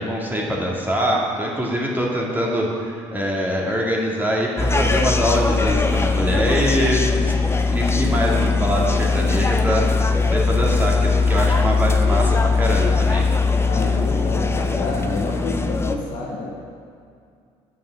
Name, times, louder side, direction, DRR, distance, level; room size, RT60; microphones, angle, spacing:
voice 1, 0.0-7.3 7.7-13.3, equal, 15° right, -3 dB, 2.2 m, -24 dB
sound 1, 4.6-16.0, left 4 dB, 20° left, 0.7 m, -20 dB
voice 2, 13.6-16.5, left 3 dB, 65° left, -3 dB, 2.0 m, -28 dB
8.1 x 5.4 x 7.3 m, 2.3 s
supercardioid pair, 75°, 14 cm